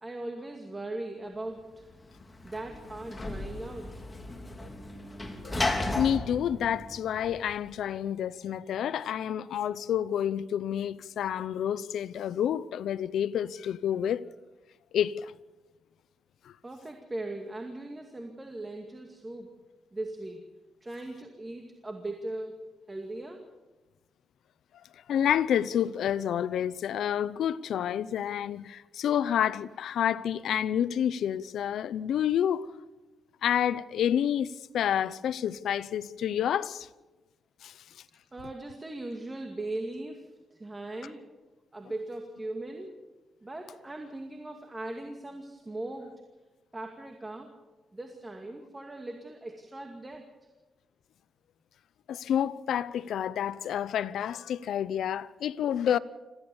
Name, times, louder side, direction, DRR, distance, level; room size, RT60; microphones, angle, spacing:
voice 1, 0.0-1.8 2.4-3.9 16.6-19.5 19.9-20.4 20.8-22.6 22.9-23.5 38.3-41.2 41.7-43.0 43.4-46.1 46.7-47.5 47.9-50.3, right 2 dB, 20° right, 2.3 m, -39 dB
Sliding door / Slam, 1.8-7.7, left 2 dB, 20° left, 3.2 m, -35 dB
voice 2, 5.9-14.2 14.9-15.3 25.1-32.7 33.4-36.9 37.6-37.8 52.1-56.0, left 9 dB, 85° left, 0.7 m, -29 dB
26.5 x 15.5 x 7.1 m
cardioid pair, 100°, 0 cm